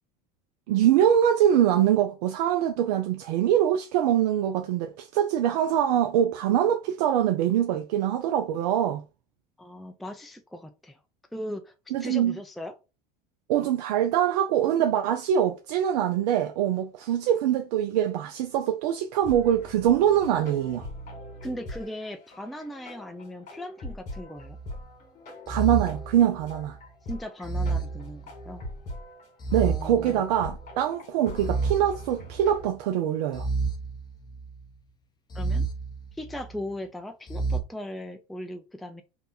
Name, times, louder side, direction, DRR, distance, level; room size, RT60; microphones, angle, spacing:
voice 1, 0.7-9.0 11.9-12.4 13.5-20.9 25.5-26.8 29.5-33.5, right 10 dB, 70° right, 0.5 m, -24 dB
voice 2, 9.6-11.0 11.3-12.7 21.4-24.6 27.1-28.6 29.6-30.2 35.3-35.7 36.1-39.0, left 1 dB, ahead, 0.4 m, -38 dB
sound 1, 19.2-32.7, left 1 dB, 40° left, 2.1 m, -43 dB
sound 2, 24.4-24.8 25.5-26.8 27.4-28.7 29.4-30.7 31.4-32.7 33.3-34.6 35.3-36.6 37.3-37.6, right 4 dB, 20° left, 0.8 m, -31 dB
3.3 x 2.8 x 4.2 m
hypercardioid pair, 95°, 21 cm